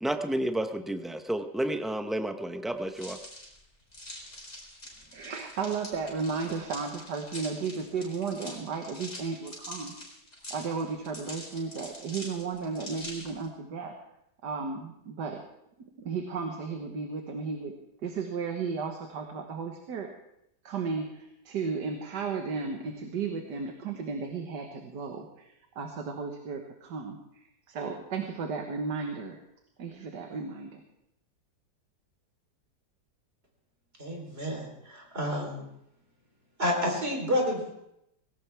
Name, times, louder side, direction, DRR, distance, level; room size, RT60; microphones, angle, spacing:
voice 1, 0.0-3.2, right 1 dB, ahead, 6 dB, 0.3 m, -31 dB
sound 1, 2.9-13.5, left 1 dB, 30° left, 4.7 m, -44 dB
voice 2, 5.1-10.0 10.5-13.9 14.4-15.4 16.0-17.7 18.0-20.1 20.6-29.4 29.8-30.8, right 5 dB, 80° right, 3 dB, 1.9 m, -34 dB
voice 3, 34.0-35.7 36.6-37.7, equal, 35° right, 0 dB, 4.0 m, -30 dB
19.0 x 17.0 x 3.5 m, 0.80 s
omnidirectional pair, 1.8 m